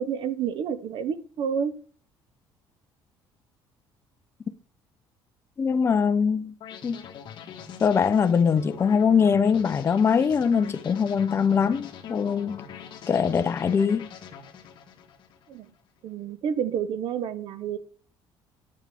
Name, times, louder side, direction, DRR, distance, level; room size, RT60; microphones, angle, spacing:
voice 1, 0.0-1.7 15.5-15.7 16.0-17.8, right 7 dB, 60° right, 1.0 m, -29 dB
voice 2, 5.6-6.5 6.8-7.0 7.8-12.6 13.1-14.1, left 6 dB, 30° left, 0.6 m, -22 dB
sound 1, 6.6-15.7, left 8 dB, 60° left, 1.4 m, -43 dB
10.5 x 7.4 x 3.5 m
cardioid pair, 135°, 9 cm